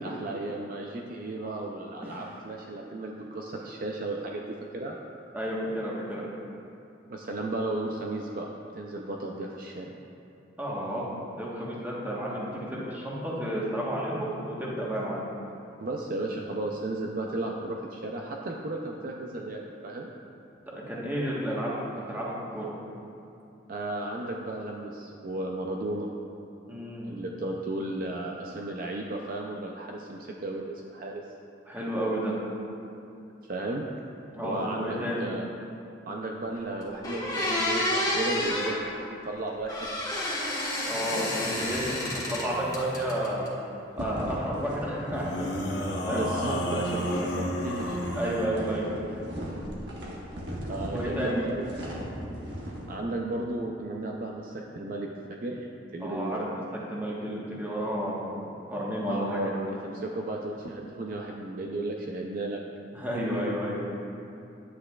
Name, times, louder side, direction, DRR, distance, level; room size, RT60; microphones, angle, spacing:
voice 1, 0.0-5.0 7.1-8.5 8.8-9.9 15.8-20.1 23.7-26.1 27.1-31.2 33.5-33.8 34.4-35.5 36.1-39.9 46.1-48.0 50.7-51.7 52.9-55.1 55.4-55.7 55.9-56.5 59.1-62.6, right 2 dB, 50° right, 0 dB, 0.5 m, -34 dB
voice 2, 5.3-6.2 10.6-15.2 20.7-22.7 26.7-27.1 31.7-32.4 34.3-35.3 40.9-41.9 42.1-43.5 43.9-46.2 48.1-49.1 50.9-51.4 56.0-56.4 56.9-58.3 58.7-59.4 62.9-63.9, equal, 10° right, -5 dB, 1.2 m, -31 dB
sound 1, 36.5-36.6 37.0-38.8 39.7-42.5 42.7-43.5, left 1 dB, 20° left, 1.2 m, -29 dB
sound 2, 42.5-43.0 45.1-48.6, equal, 70° left, 0.9 m, -32 dB
sound 3, 44.0-52.9, equal, 70° right, 1.3 m, -38 dB
9.8 x 8.5 x 2.3 m, 2.7 s
head